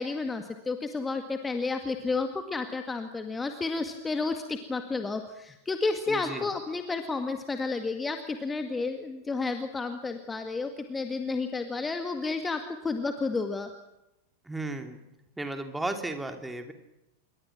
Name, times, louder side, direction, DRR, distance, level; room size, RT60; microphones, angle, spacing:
voice 1, 0.0-13.7, left 3 dB, 15° left, 7 dB, 1.9 m, -31 dB
voice 2, 6.1-6.5 14.5-15.0 15.4-16.7, right 2 dB, 5° right, 6 dB, 3.0 m, -34 dB
27.5 x 23.5 x 6.1 m, 0.91 s
figure-of-eight pair, 90°, 0 cm